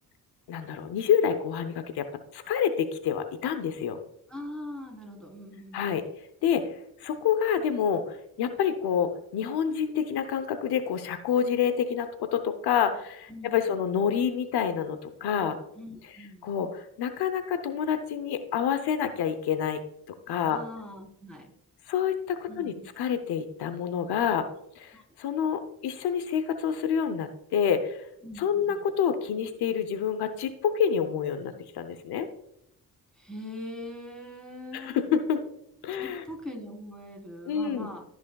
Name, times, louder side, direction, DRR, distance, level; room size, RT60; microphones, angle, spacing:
voice 1, 0.5-2.1 2.3-4.0 5.7-6.0 6.4-6.7 7.0-15.6 16.4-19.8 20.3-20.6 21.9-24.5 24.8-28.1 28.4-32.3 34.7-35.4 35.8-36.2 37.5-37.9, left 8 dB, 90° left, 10 dB, 0.8 m, -28 dB
voice 2, 4.3-6.0 13.3-13.8 15.7-16.5 20.5-21.5 22.5-22.9 24.9-25.0 28.2-28.9 33.2-35.2 36.0-38.1, left 1 dB, ahead, 0 dB, 3.6 m, -42 dB
16.0 x 6.2 x 2.3 m, 0.79 s
cardioid pair, 60°, 38 cm